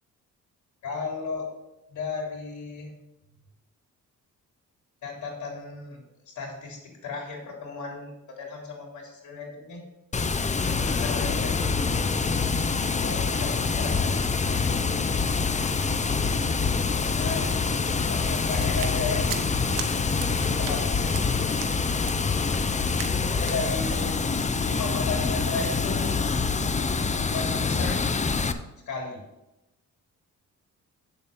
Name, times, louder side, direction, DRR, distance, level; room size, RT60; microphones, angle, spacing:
voice 1, 0.8-1.5 1.9-2.9 5.0-6.0 6.4-9.8 10.6-11.9 13.0-14.6 17.0-17.5 18.0-19.2 19.7-21.6 23.3-24.2 24.6-26.2 27.3-28.2 28.9-29.2, left 4 dB, 60° left, 0 dB, 3.7 m, -35 dB
Water, 10.1-28.5, left 4 dB, 20° left, 0.6 m, -26 dB
sound 1, 18.4-19.9 20.2-20.3 20.6-20.8 21.1-21.3 21.6-21.7 22.0-22.2 22.5-22.7 23.0-23.2 23.4-23.6, right 8 dB, 80° right, 1.1 m, -37 dB
8.2 x 7.0 x 5.3 m, 0.92 s
cardioid pair, 90°, 32 cm